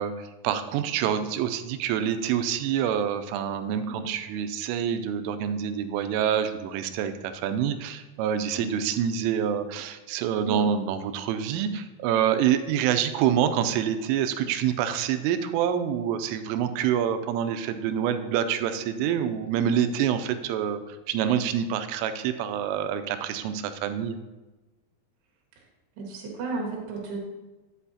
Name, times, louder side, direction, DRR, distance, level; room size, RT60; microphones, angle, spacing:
voice 1, 0.0-24.2, right 9 dB, 85° right, 9 dB, 3.1 m, -26 dB
voice 2, 3.9-4.2 8.6-8.8 10.5-10.7 26.0-27.2, right 3 dB, 65° right, -1 dB, 3.5 m, -34 dB
10.0 x 8.2 x 2.8 m, 1.2 s
omnidirectional pair, 5.7 m